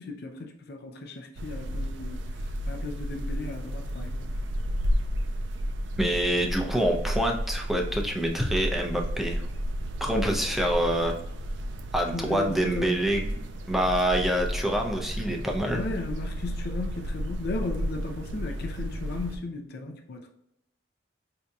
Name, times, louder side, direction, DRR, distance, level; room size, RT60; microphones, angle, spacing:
voice 1, 0.0-2.2 2.7-4.3 12.1-13.0 15.7-20.3, left 3 dB, 60° left, 4 dB, 0.5 m, -36 dB
sound 1, 1.4-19.4, equal, 70° right, 0.4 m, -32 dB
voice 2, 6.0-9.4 10.0-11.1 11.9-13.4 13.7-15.8, right 1 dB, ahead, 1 dB, 0.5 m, -26 dB
4.9 x 2.7 x 2.3 m, 0.77 s
head